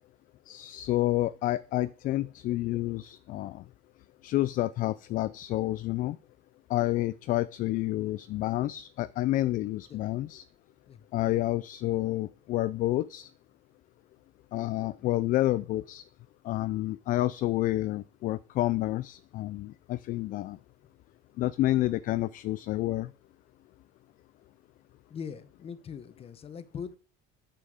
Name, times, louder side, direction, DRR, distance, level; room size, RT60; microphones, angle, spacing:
voice 1, 0.5-3.6 4.2-6.2 6.7-10.4 11.1-13.3 14.5-16.0 16.4-20.6 21.4-23.1, left 16 dB, 50° left, 16 dB, 0.4 m, -29 dB
voice 2, 25.1-27.0, left 7 dB, 35° left, 13 dB, 1.0 m, -41 dB
8.6 x 7.5 x 5.0 m, 0.38 s
cardioid pair, 135°, 17 cm